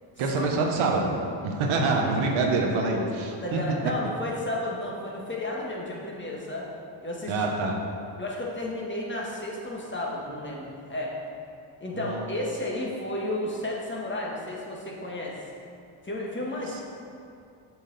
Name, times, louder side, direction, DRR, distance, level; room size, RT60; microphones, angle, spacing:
voice 1, 0.2-1.1 1.4-3.6 7.3-7.7 11.9-12.2 16.7-16.8, right 3 dB, 75° right, 1 dB, 1.1 m, -26 dB
voice 2, 3.4-6.7 7.0-7.5 8.2-11.2 11.8-15.4 16.0-16.8, left 1 dB, 20° left, -3 dB, 1.6 m, -32 dB
6.8 x 5.9 x 4.1 m, 2.5 s
supercardioid pair, 65°, 50 cm